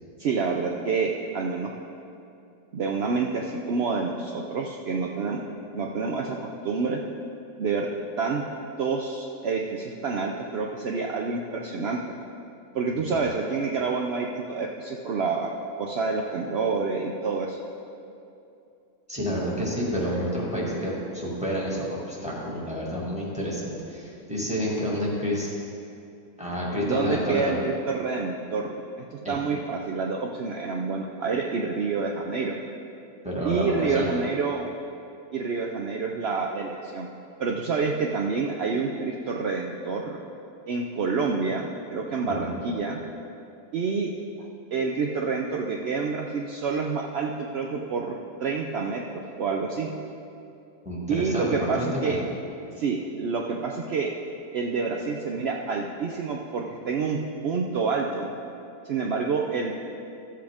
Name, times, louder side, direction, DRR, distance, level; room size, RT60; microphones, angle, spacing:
voice 1, 0.2-1.7 2.7-5.4 5.7-6.4 6.6-7.0 7.6-7.9 8.2-8.4 8.8-12.0 12.7-15.5 15.8-17.6 26.9-32.6 33.4-34.6 35.3-37.1 37.4-40.2 40.7-43.0 43.7-44.1 44.4-49.0 49.4-49.9 51.1-52.2 52.8-54.1 54.5-58.3 58.8-59.7, right 4 dB, 65° right, 0 dB, 0.6 m, -28 dB
voice 2, 19.1-25.5 26.4-27.6 29.2-29.4 33.2-34.1 42.3-42.6 50.9-52.1, equal, 5° right, -6 dB, 1.8 m, -29 dB
13.5 x 7.5 x 3.5 m, 2.7 s
omnidirectional pair, 1.7 m